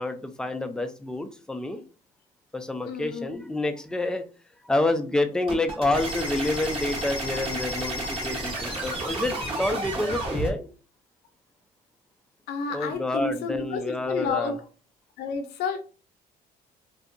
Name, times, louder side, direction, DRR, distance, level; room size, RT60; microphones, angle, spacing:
voice 1, 0.0-1.8 2.5-4.3 4.6-10.7 12.7-14.6, left 2 dB, 5° left, 7 dB, 0.3 m, -28 dB
voice 2, 2.8-3.4 12.5-14.6 15.2-15.8, left 5 dB, 75° left, 6 dB, 0.6 m, -30 dB
sound 1, 5.5-10.5, right 1 dB, 30° right, 1.1 m, -31 dB
2.6 x 2.3 x 2.5 m, 0.36 s
cardioid pair, 110°, 17 cm